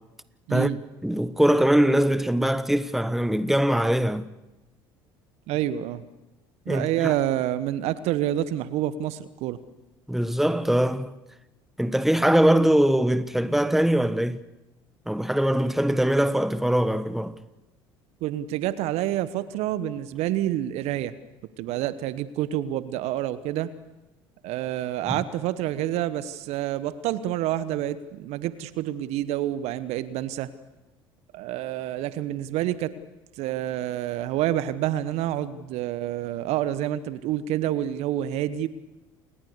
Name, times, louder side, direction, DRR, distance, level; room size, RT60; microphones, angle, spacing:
voice 1, 0.5-0.8 5.5-6.0 6.7-9.6 18.2-21.1 21.6-23.7 24.4-30.5 31.3-32.9 33.4-38.7, right 12 dB, 60° right, 1.2 m, -28 dB
voice 2, 1.0-4.3 6.7-7.1 10.1-11.1 11.8-14.4 15.1-17.4 25.1-25.2, right 1 dB, ahead, 1.2 m, -22 dB
28.5 x 19.0 x 6.9 m
hypercardioid pair, 60°, 12 cm